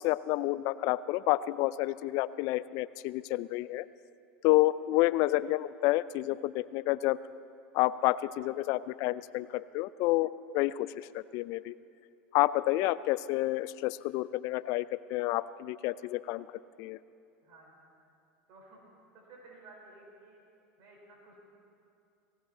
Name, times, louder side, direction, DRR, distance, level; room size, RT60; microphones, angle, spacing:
voice 1, 0.0-3.9 4.4-7.2 7.7-11.7 12.3-16.5 16.8-17.0, left 17 dB, 60° left, 17 dB, 0.4 m, -29 dB
voice 2, 17.4-17.8 18.5-18.8 19.1-20.4 20.8-21.4, right 2 dB, 55° right, -2 dB, 5.0 m, -54 dB
18.0 x 16.5 x 4.4 m, 2.5 s
hypercardioid pair, 100°, 7 cm